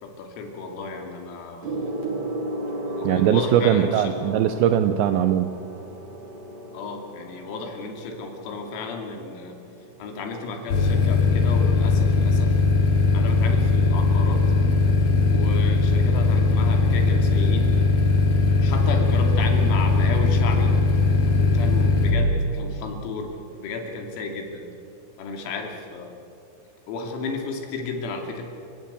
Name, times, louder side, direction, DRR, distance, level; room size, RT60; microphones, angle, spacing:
voice 1, 0.0-1.8 2.9-4.1 6.7-9.6 10.0-12.5 13.1-14.5 15.3-17.8 18.6-20.8 21.4-24.6 25.2-26.2 26.9-28.4, left 4 dB, 85° left, 3 dB, 5.4 m, -33 dB
Gong, 1.6-11.4 12.3-12.6, right 1 dB, 35° right, 2.3 m, -35 dB
voice 2, 3.0-5.5, right 10 dB, 85° right, 9 dB, 2.6 m, -20 dB
sound 1, 10.7-22.1, left 4 dB, 50° left, 3.5 m, -19 dB
29.5 x 17.0 x 8.5 m, 2.5 s
omnidirectional pair, 6.0 m